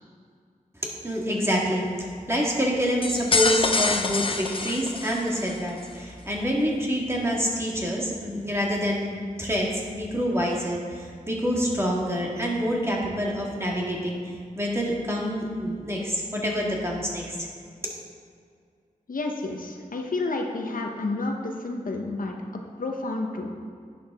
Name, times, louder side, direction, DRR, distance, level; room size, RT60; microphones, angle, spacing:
voice 1, 0.8-17.5 17.8-17.9, equal, 15° right, -3 dB, 1.7 m, -27 dB
sound 1, 3.0-5.6, left 3 dB, 40° left, 0.6 m, -25 dB
voice 2, 19.1-22.3 22.8-23.5, left 2 dB, 75° left, 2 dB, 0.9 m, -30 dB
10.5 x 7.1 x 3.6 m, 2.1 s
wide cardioid pair, 95°, 15 cm